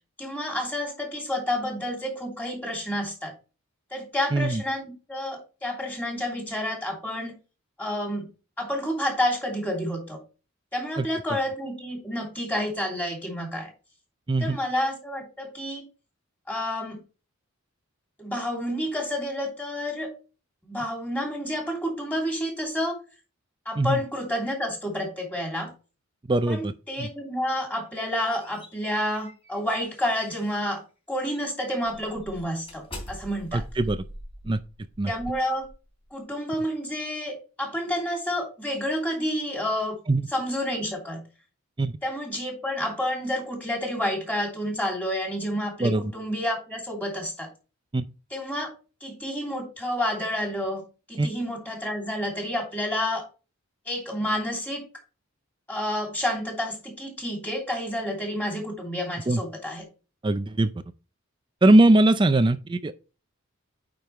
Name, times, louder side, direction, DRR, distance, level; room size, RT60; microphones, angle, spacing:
voice 1, 0.2-3.3 3.9-7.3 7.8-8.3 8.6-10.2 10.7-13.7 14.4-15.8 16.5-17.0 18.2-20.1 20.6-23.0 23.6-25.7 26.5-30.8 31.1-33.6 35.1-35.7 36.1-40.0 40.3-41.2 42.0-47.5 48.3-48.7 49.0-53.2 53.9-54.8 55.7-59.8, left 1 dB, 10° left, 2.9 m, -29 dB
voice 2, 4.3-4.6 11.0-11.1 14.3-14.6 23.8-24.0 26.3-26.7 27.0-27.1 33.5-34.0 34.5-34.6 35.0-35.1 40.1-40.3 41.8-42.0 45.8-46.1 47.9-48.1 51.2-51.3 59.3-59.4 60.2-60.7 61.6-62.9, right 2 dB, 25° right, 0.4 m, -21 dB
sound 1, 27.8-30.7 31.2-31.4 31.9-36.1, equal, 25° left, 3.2 m, -43 dB
9.2 x 5.3 x 3.1 m
head